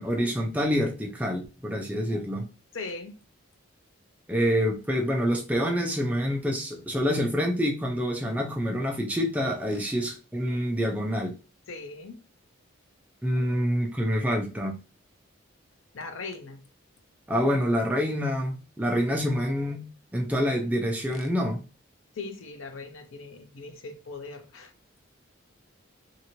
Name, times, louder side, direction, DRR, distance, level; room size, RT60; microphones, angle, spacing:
voice 1, 0.0-2.5 4.3-11.3 13.2-14.8 17.3-19.9 20.1-21.6, equal, 5° right, 0.4 m, -27 dB
voice 2, 2.7-3.1 11.7-12.2 15.9-16.6 22.2-24.7, left 3 dB, 75° left, 0.5 m, -39 dB
2.8 x 2.5 x 2.8 m
head